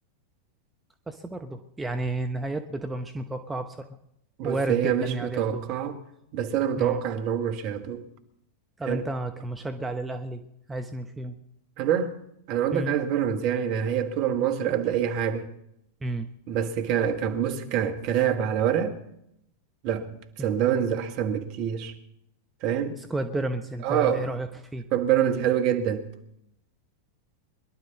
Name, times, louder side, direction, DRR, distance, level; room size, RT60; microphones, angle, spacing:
voice 1, 1.1-3.9 4.4-5.6 6.8-7.0 8.8-10.4 10.7-11.4 12.7-13.0 16.0-16.3 20.4-20.5 23.0-24.8, right 2 dB, 10° right, 0.9 m, -32 dB
voice 2, 4.4-6.0 6.3-8.0 8.9-9.0 11.8-12.1 12.5-15.5 16.5-18.9 19.8-21.9 22.6-23.0 23.8-24.3 24.9-26.1, right 9 dB, 45° right, 1.6 m, -26 dB
22.5 x 11.5 x 4.1 m
figure-of-eight pair, 90°, 0 cm